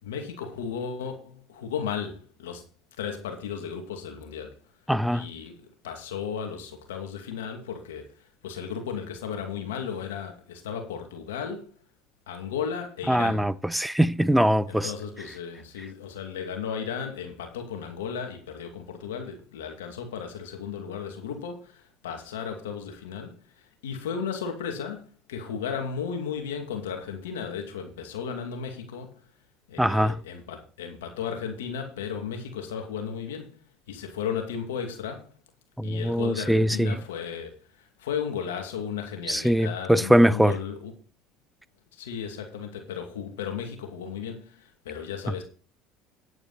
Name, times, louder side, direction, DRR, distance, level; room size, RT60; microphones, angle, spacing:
voice 1, 0.0-2.7 3.0-4.6 5.1-5.6 5.8-8.1 8.4-11.7 12.3-13.5 14.7-23.3 23.8-25.0 25.3-29.1 29.7-33.6 33.9-35.3 35.8-37.6 38.0-40.9 42.0-45.4, left 7 dB, 90° left, 2.3 m, -35 dB
voice 2, 4.9-5.3 13.1-14.9 29.8-30.2 35.8-37.0 39.3-40.6, equal, 5° right, 0.6 m, -22 dB
9.9 x 9.0 x 4.2 m
hypercardioid pair, 80°, 0 cm